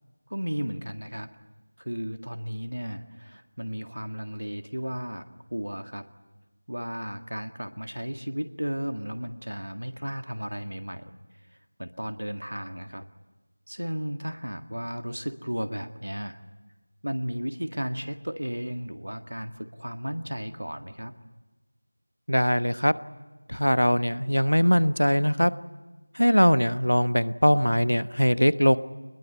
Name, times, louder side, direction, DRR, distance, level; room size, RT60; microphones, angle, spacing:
voice 1, 0.3-1.3 1.8-5.2 5.5-6.1 6.7-11.1 11.8-13.1 13.7-16.4 17.0-21.1, equal, 75° right, 8 dB, 1.9 m, -34 dB
voice 2, 22.3-22.9 23.5-25.5 26.2-28.8, equal, 85° left, 15 dB, 1.1 m, -21 dB
23.0 x 21.5 x 9.7 m, 1.2 s
figure-of-eight pair, 170°, 0 cm